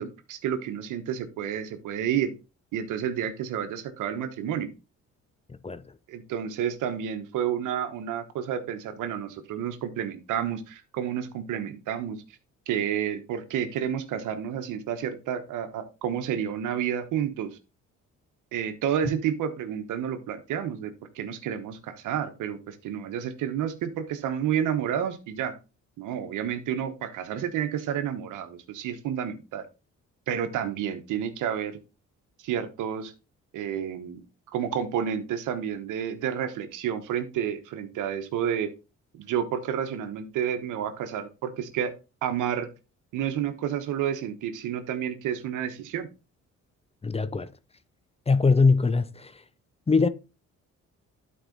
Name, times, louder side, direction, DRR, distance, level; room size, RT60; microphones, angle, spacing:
voice 1, 0.0-2.3 2.7-4.7 6.1-12.2 12.7-17.6 18.5-25.5 26.0-29.6 30.3-31.8 32.4-33.1 33.5-34.2 34.5-38.7 39.1-41.9 42.2-42.7 43.1-46.1, right 9 dB, 85° right, 1.2 m, -30 dB
voice 2, 5.5-5.8 47.0-47.5 48.3-49.4 49.9-50.1, left 4 dB, 20° left, 0.5 m, -22 dB
11.5 x 4.8 x 3.9 m
cardioid pair, 90°, 30 cm